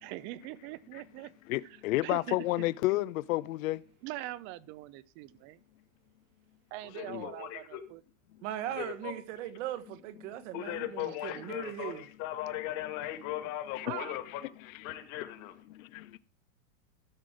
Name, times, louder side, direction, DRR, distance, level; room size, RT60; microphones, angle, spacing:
voice 1, 0.0-1.3 1.6-1.8 2.0-2.7 4.0-5.6 6.7-8.0 11.4-11.5 13.8-14.1, right 16 dB, 30° right, 0.4 m, -42 dB
voice 2, 1.5-3.8 7.1-7.3 13.0-13.1 13.8-14.2 15.7-16.2, left 18 dB, 70° left, 0.6 m, -31 dB
voice 3, 6.8-7.8 8.7-9.1 10.5-14.4 14.8-15.5, left 13 dB, 40° left, 1.9 m, -38 dB
voice 4, 8.4-12.0, right 12 dB, 55° right, 1.3 m, -39 dB
13.5 x 6.1 x 4.9 m
hypercardioid pair, 130°, 42 cm